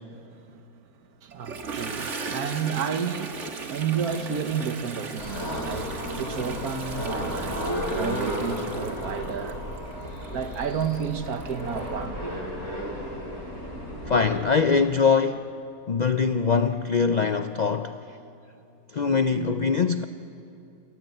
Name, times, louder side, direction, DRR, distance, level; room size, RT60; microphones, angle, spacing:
voice 1, 0.1-0.7 1.2-9.6 10.3-12.4, right 7 dB, 85° right, 1.6 m, -31 dB
Toilet flush, 1.3-11.9, right 4 dB, 55° right, 1.8 m, -38 dB
sound 1, 5.2-14.4, equal, 50° left, 4.6 m, -33 dB
voice 2, 14.1-15.5 15.9-18.0 18.9-20.0, left 5 dB, 70° left, 0.4 m, -22 dB
27.5 x 14.5 x 9.1 m
omnidirectional pair, 1.6 m